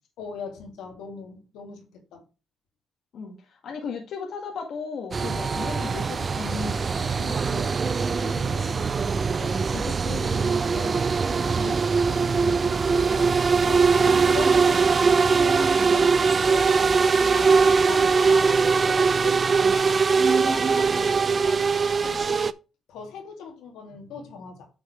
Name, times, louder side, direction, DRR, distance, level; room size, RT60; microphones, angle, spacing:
voice 1, 0.2-2.2 5.2-5.4 8.0-9.1 11.2-11.7 13.1-13.3 13.6-21.7 22.0-22.4 22.9-24.7, left 6 dB, 85° left, 2.6 m, -40 dB
voice 2, 3.6-7.8 9.4-11.2 11.6-11.8 12.1-13.4 13.7-14.2, left 5 dB, 65° left, 2.0 m, -37 dB
sound 1, 5.1-22.5, right 5 dB, 35° right, 0.5 m, -21 dB
9.3 x 5.7 x 3.2 m
cardioid pair, 90°, 0 cm